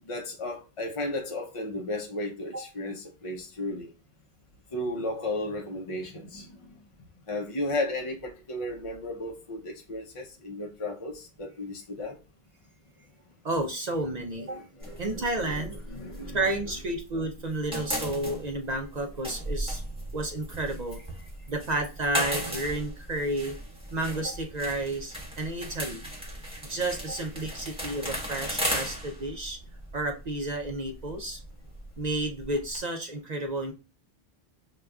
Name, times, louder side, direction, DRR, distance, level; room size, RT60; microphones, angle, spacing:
voice 1, 0.1-3.9 4.7-6.8 7.3-12.2 14.5-16.4 27.9-28.0, left 1 dB, 40° left, 2 dB, 0.5 m, -34 dB
voice 2, 13.4-14.6 15.0-15.8 16.3-19.8 20.1-21.0 21.5-23.6 23.9-26.0 26.7-29.6 29.9-31.4 32.0-33.7, right 2 dB, 50° right, 4 dB, 0.6 m, -31 dB
sound 1, 14.8-17.1 17.3-32.8, equal, 5° right, 1.2 m, -36 dB
6.5 x 2.2 x 2.3 m, 0.31 s
omnidirectional pair, 1.1 m